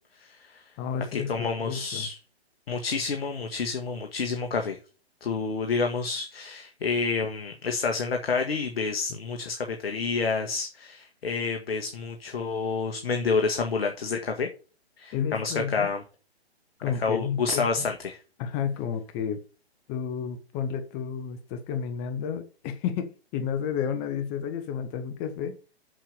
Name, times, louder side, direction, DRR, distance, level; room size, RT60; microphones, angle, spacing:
voice 1, 0.2-0.6 1.1-2.2 2.7-4.8 5.2-14.5 15.0-16.0 17.0-18.2, left 4 dB, 65° left, 1.9 m, -29 dB
voice 2, 0.8-2.1 15.1-15.9 16.8-17.9 18.4-19.4 19.9-25.6, left 7 dB, 25° left, 1.1 m, -31 dB
7.5 x 6.7 x 6.7 m
hypercardioid pair, 140°, 32 cm